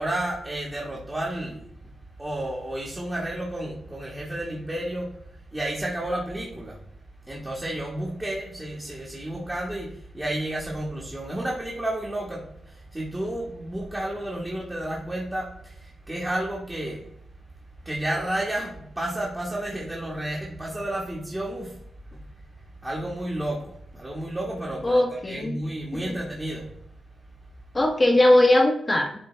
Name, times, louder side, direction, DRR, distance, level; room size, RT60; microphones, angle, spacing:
voice 1, 0.0-1.6 2.2-5.1 5.5-6.8 7.3-17.0 17.8-21.7 22.1-22.2 22.8-26.7, right 1 dB, 15° right, -3 dB, 1.6 m, -31 dB
voice 2, 24.8-25.6 25.9-26.2 27.7-29.2, left 1 dB, 25° left, 3 dB, 1.1 m, -20 dB
11.0 x 3.8 x 3.4 m, 0.72 s
cardioid pair, 85°, 0 cm